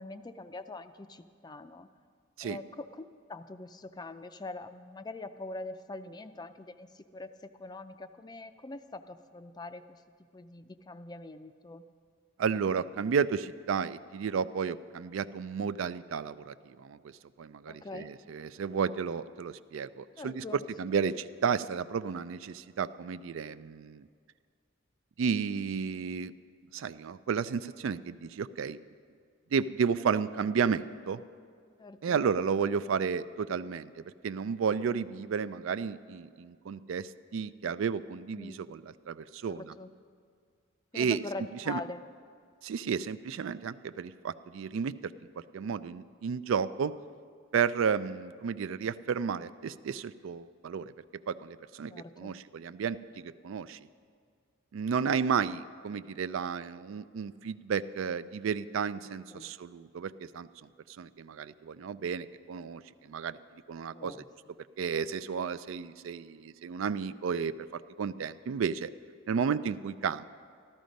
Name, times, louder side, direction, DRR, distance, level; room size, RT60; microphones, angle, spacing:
voice 1, 0.0-1.9 2.4-10.0 10.3-11.8 17.7-18.2 20.2-20.6 31.8-32.2 38.3-38.6 39.5-39.9 40.9-42.1 51.9-52.3 59.3-59.5 63.9-64.3, left 2 dB, 20° left, 10 dB, 0.4 m, -43 dB
voice 2, 12.4-17.1 17.4-20.4 20.8-24.1 25.2-26.3 26.7-28.8 29.5-31.2 32.0-38.8 39.1-39.7 40.9-41.2 41.7-41.8 42.6-45.1 45.5-46.9 47.5-50.9 51.3-53.8 54.7-60.5 60.9-63.4 63.7-64.1 64.8-68.9 69.3-70.2, right 6 dB, 65° right, 14 dB, 0.4 m, -32 dB
14.0 x 12.5 x 5.2 m, 2.1 s
head